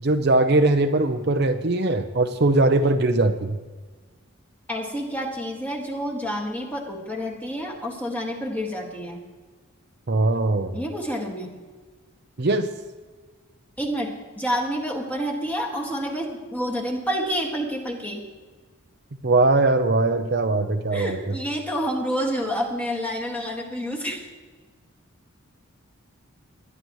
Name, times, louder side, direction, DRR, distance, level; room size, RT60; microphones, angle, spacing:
voice 1, 0.0-3.6 10.1-10.8 12.4-12.7 19.2-21.2, right 2 dB, 50° right, 7 dB, 0.7 m, -20 dB
voice 2, 4.7-9.2 10.7-11.5 13.8-18.2 20.9-24.2, equal, 10° left, -1 dB, 1.8 m, -28 dB
20.5 x 11.0 x 3.1 m, 1.4 s
head